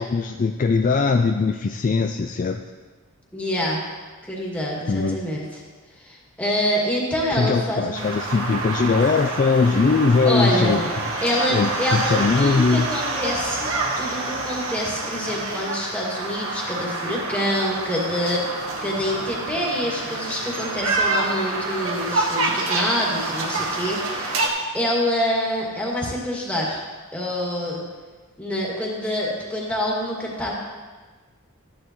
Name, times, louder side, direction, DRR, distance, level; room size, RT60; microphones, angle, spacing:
voice 1, 0.0-2.6 4.9-5.2 7.3-10.8 11.2-12.9, left 4 dB, 35° left, 5 dB, 0.3 m, -21 dB
voice 2, 3.3-3.8 4.2-5.6 6.0-8.0 10.2-24.5 24.7-26.8 27.1-27.8 28.4-30.5, equal, 5° left, -4 dB, 2.1 m, -26 dB
sound 1, 7.9-24.5, right 2 dB, 65° right, 1.5 m, -27 dB
14.0 x 10.0 x 3.1 m, 1.4 s
head